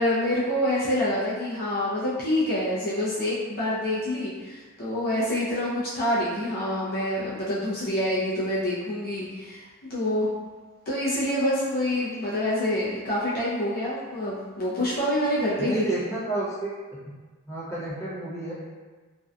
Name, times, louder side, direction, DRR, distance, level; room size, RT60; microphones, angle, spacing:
voice 1, 0.0-10.3 10.9-15.8, left 1 dB, 45° left, -9 dB, 0.5 m, -26 dB
voice 2, 15.6-16.7 17.5-18.5, right 2 dB, 15° left, -11 dB, 0.9 m, -30 dB
2.5 x 2.2 x 2.3 m, 1.3 s
head